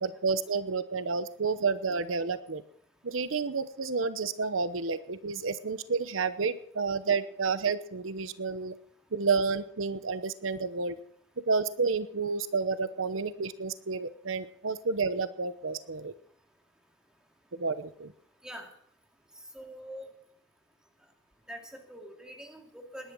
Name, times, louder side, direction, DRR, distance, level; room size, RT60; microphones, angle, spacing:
voice 1, 0.0-2.6 3.0-8.7 9.1-11.0 11.5-16.1 17.6-18.1, right 4 dB, 90° right, 14 dB, 0.9 m, -30 dB
voice 2, 19.5-20.1 21.5-23.1, equal, 5° right, 2 dB, 2.5 m, -44 dB
19.0 x 10.5 x 6.1 m, 0.64 s
head